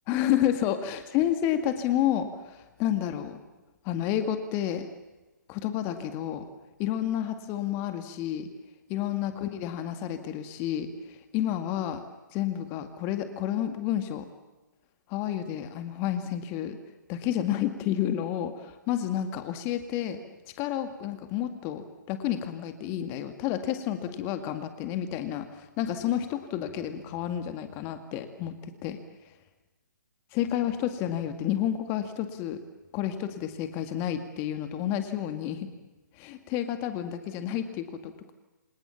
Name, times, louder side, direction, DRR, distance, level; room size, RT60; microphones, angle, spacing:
voice 1, 0.1-3.4 3.8-4.9 5.5-6.5 6.8-8.5 8.9-12.0 12.3-14.3 15.1-16.8 17.1-20.2 20.6-28.5 28.8-29.0 30.3-32.6 32.9-35.7 36.2-38.3, left 11 dB, 25° left, 9 dB, 2.1 m, -30 dB
27.5 x 27.5 x 7.2 m, 1.1 s
figure-of-eight pair, 135°, 10 cm